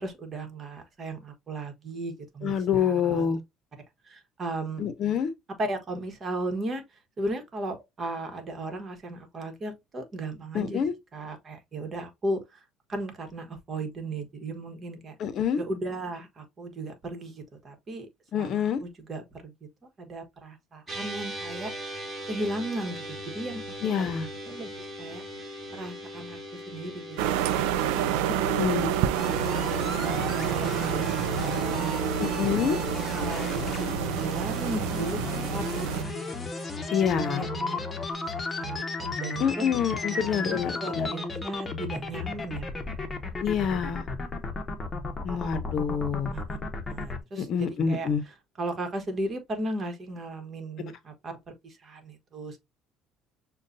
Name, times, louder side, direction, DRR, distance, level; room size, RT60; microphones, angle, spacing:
voice 1, 0.0-3.3 4.0-4.9 5.6-10.8 11.1-12.6 12.9-15.2 15.6-19.5 20.0-23.6 23.9-24.0 24.5-27.2 27.4-27.7 27.9-28.9 30.0-32.1 32.5-32.6 33.1-35.2 35.5-36.9 37.1-37.8 38.3-39.6 40.1-43.0 46.3-46.4 46.9-52.6, right 2 dB, 35° right, 1.2 m, -36 dB
voice 2, 2.4-3.4 4.8-5.3 10.5-10.9 15.2-15.6 18.3-18.8 23.8-24.3 28.4-28.9 32.2-32.8 36.9-37.5 39.4-41.1 43.4-44.1 45.2-46.3 47.4-48.2, left 7 dB, 55° left, 0.7 m, -27 dB
sound 1, 20.9-38.1, left 1 dB, 15° right, 1.9 m, -42 dB
sound 2, 27.2-36.0, right 10 dB, 90° right, 0.4 m, -28 dB
sound 3, 29.2-47.2, left 3 dB, 25° left, 0.9 m, -34 dB
6.4 x 2.3 x 2.6 m
cardioid pair, 110°, 0 cm